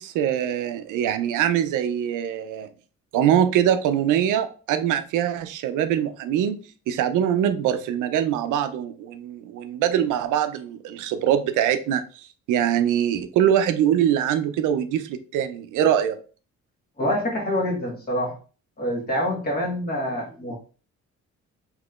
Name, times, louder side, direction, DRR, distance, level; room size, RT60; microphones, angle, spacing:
voice 1, 0.0-2.7 3.1-12.0 12.5-16.2, right 10 dB, 85° right, 10 dB, 0.5 m, -23 dB
voice 2, 17.0-18.4 18.8-20.5, equal, 30° left, -1 dB, 1.4 m, -26 dB
3.5 x 3.0 x 2.4 m, 0.38 s
cardioid pair, 90°, 30 cm